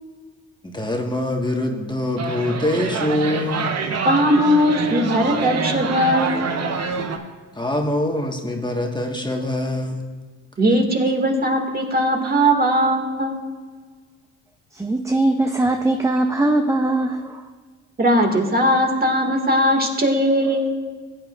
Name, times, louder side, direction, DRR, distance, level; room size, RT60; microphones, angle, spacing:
voice 1, 0.6-3.7 7.5-10.1, left 1 dB, 15° left, 1 dB, 1.5 m, -24 dB
sound 1, 2.2-7.2, right 5 dB, 55° right, 1.1 m, -26 dB
voice 2, 4.0-6.4 10.6-13.4 18.0-20.7, equal, 30° right, 2 dB, 2.0 m, -19 dB
voice 3, 14.7-17.5, right 2 dB, 10° right, 5 dB, 0.7 m, -21 dB
15.5 x 8.9 x 2.5 m, 1.5 s
supercardioid pair, 60°, 31 cm